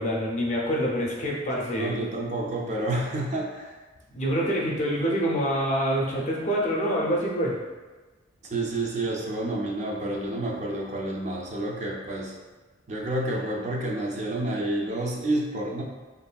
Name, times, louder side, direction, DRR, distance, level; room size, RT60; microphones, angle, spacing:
voice 1, 0.0-2.0 4.1-7.6, equal, 40° left, -3 dB, 0.5 m, -26 dB
voice 2, 1.8-3.8 8.4-12.3 12.9-15.8, right 1 dB, 40° right, -2 dB, 0.4 m, -29 dB
3.1 x 2.5 x 2.2 m, 1.3 s
head